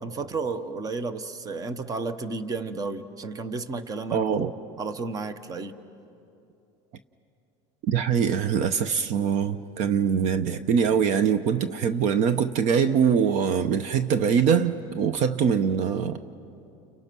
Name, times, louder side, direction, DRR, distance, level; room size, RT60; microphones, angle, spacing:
voice 1, 0.0-5.8, right 3 dB, 25° right, 12 dB, 1.0 m, -32 dB
voice 2, 4.1-4.5 7.9-16.2, right 7 dB, 55° right, 12 dB, 0.8 m, -23 dB
30.0 x 30.0 x 6.1 m, 2.8 s
cardioid pair, 140°, 15 cm